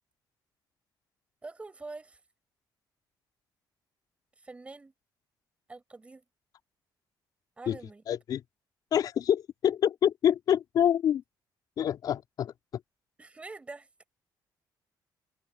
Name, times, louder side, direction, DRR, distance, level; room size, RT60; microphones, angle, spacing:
voice 1, 1.4-2.2 4.4-4.9 5.7-6.2 7.6-8.0 13.2-13.9, right 3 dB, 15° right, 5.7 m, -45 dB
voice 2, 8.1-8.4 8.9-11.2 11.8-12.5, left 9 dB, 55° left, 4.4 m, -26 dB
cardioid pair, 165°, 8 cm